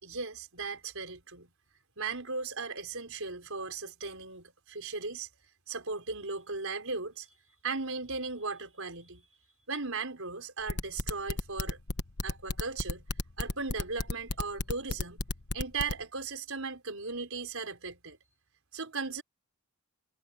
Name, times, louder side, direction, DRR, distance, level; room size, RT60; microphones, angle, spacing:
voice 1, 0.0-1.5 2.0-5.3 5.7-7.4 7.6-9.3 9.7-11.8 12.2-13.1 13.4-15.2 15.5-18.2 18.7-19.2, right 4 dB, 70° right, 5.4 m, -37 dB
sound 1, 10.7-15.9, left 2 dB, 50° left, 1.2 m, -32 dB
head